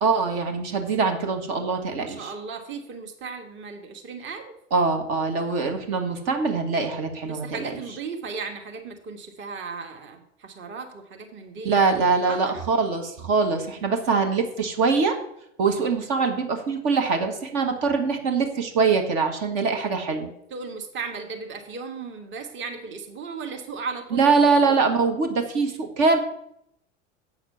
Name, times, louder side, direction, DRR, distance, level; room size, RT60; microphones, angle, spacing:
voice 1, 0.0-2.3 4.7-7.7 11.6-15.2 15.6-20.3 24.1-26.2, right 4 dB, 50° right, 5 dB, 1.4 m, -23 dB
voice 2, 2.0-4.5 7.3-11.9 12.2-12.7 20.5-24.3 24.6-24.7, right 5 dB, 30° right, 5 dB, 1.4 m, -36 dB
8.2 x 6.5 x 5.6 m, 0.74 s
figure-of-eight pair, 80°, 37 cm